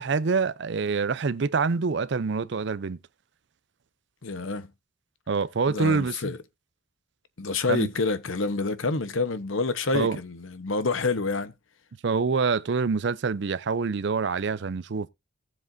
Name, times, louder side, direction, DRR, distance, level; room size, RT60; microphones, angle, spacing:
voice 1, 0.0-3.0 5.3-6.3 7.7-7.9 9.9-10.2 12.0-15.1, right 4 dB, 60° right, 0.5 m, -26 dB
voice 2, 4.2-4.7 5.7-6.4 7.4-11.5, left 3 dB, 75° left, 0.9 m, -28 dB
17.0 x 7.4 x 2.6 m
head